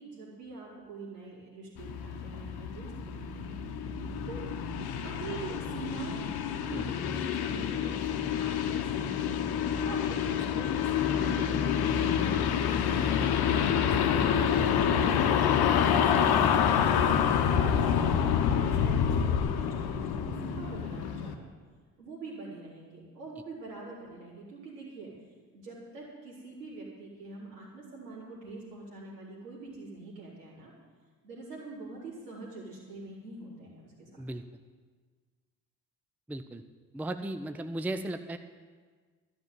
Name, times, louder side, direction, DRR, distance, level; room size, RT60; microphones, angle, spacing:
voice 1, 0.0-3.6 4.2-4.5 5.0-9.3 9.8-15.5 16.0-21.5 22.0-25.1 25.5-30.7 31.2-34.1, right 3 dB, 80° right, -6 dB, 4.0 m, -44 dB
sound 1, 1.8-21.3, left 8 dB, 50° left, 1.1 m, -27 dB
voice 2, 36.3-36.6 36.9-38.4, right 1 dB, 5° right, 9 dB, 0.6 m, -35 dB
13.0 x 6.0 x 9.3 m, 1.5 s
figure-of-eight pair, 50°, 47 cm